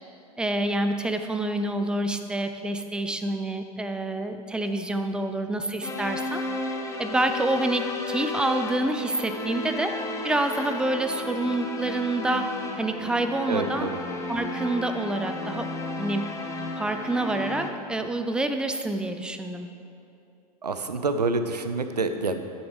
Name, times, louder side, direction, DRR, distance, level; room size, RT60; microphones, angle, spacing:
voice 1, 0.4-6.4 7.0-9.9 10.2-12.5 12.8-13.9 14.3-15.7 16.0-16.3 16.8-19.7, right 1 dB, 5° right, 7 dB, 0.4 m, -27 dB
sound 1, 5.8-17.7, left 2 dB, 15° left, 0.8 m, -33 dB
voice 2, 13.5-14.0 20.6-22.4, right 3 dB, 85° right, 8 dB, 0.6 m, -27 dB
10.5 x 8.5 x 3.2 m, 2.7 s
figure-of-eight pair, 95°, 20 cm